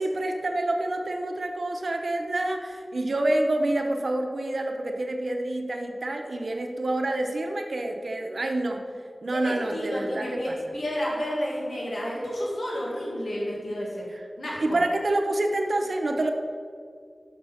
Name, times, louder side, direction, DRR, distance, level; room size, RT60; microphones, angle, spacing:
voice 1, 0.0-8.8 9.2-10.6 14.1-14.2 14.6-16.3, right 1 dB, 75° right, 3 dB, 0.8 m, -27 dB
voice 2, 9.3-14.1 14.4-14.8, equal, 80° left, -4 dB, 1.8 m, -31 dB
6.2 x 6.1 x 5.7 m, 2.2 s
cardioid pair, 45°, 0 cm